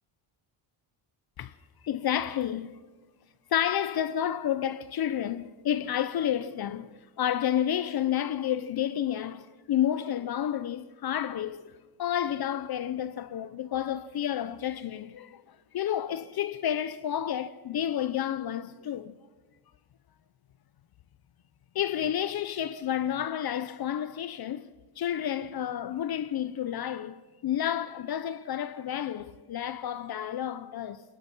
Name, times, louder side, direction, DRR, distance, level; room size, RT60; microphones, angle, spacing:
voice 1, 1.8-2.8 3.5-6.9 7.2-11.7 12.0-15.4 15.7-19.1 21.7-31.0, left 10 dB, 45° left, 0.8 m, -30 dB
23.0 x 20.0 x 6.1 m
cardioid pair, 120°, 50 cm